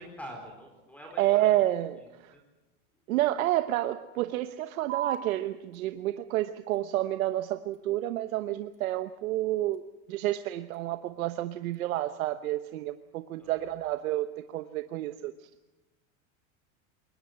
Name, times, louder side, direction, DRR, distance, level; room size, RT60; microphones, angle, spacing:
voice 1, 0.0-1.5 2.3-2.4 13.4-13.7, equal, 5° left, 3 dB, 4.2 m, -45 dB
voice 2, 1.2-2.3 3.1-9.8 10.1-15.5, right 14 dB, 90° right, 10 dB, 1.1 m, -29 dB
sound 1, 4.9-11.9, right 10 dB, 30° right, 2.3 m, -44 dB
22.5 x 20.0 x 7.9 m, 1.1 s
supercardioid pair, 155°, 41 cm